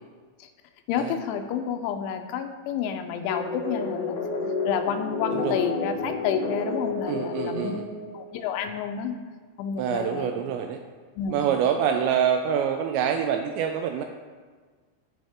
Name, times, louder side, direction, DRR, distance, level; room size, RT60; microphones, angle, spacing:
voice 1, 0.9-4.2 4.7-7.8 8.1-9.1 9.6-10.4 11.2-11.4, left 8 dB, 85° left, 6 dB, 3.0 m, -30 dB
sound 1, 3.3-8.4, left 3 dB, 65° left, 3.4 m, -30 dB
voice 2, 7.1-7.9 9.8-10.8 11.3-14.0, right 8 dB, 85° right, 5 dB, 2.6 m, -26 dB
14.0 x 5.5 x 3.6 m, 1.5 s
omnidirectional pair, 5.5 m